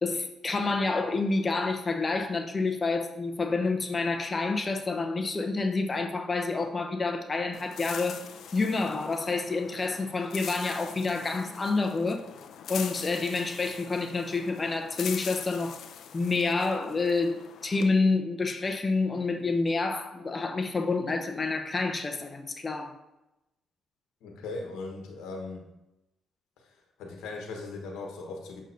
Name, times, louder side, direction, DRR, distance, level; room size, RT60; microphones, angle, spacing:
voice 1, 0.0-8.2 8.5-12.2 12.7-15.8 16.1-22.9, left 3 dB, 30° left, 5 dB, 0.8 m, -28 dB
sound 1, 7.5-17.9, left 8 dB, 70° left, 0.4 m, -43 dB
voice 2, 24.2-25.7 26.6-28.6, left 3 dB, 90° left, 2 dB, 1.1 m, -39 dB
6.4 x 6.4 x 2.7 m, 0.94 s
cardioid pair, 90°, 0 cm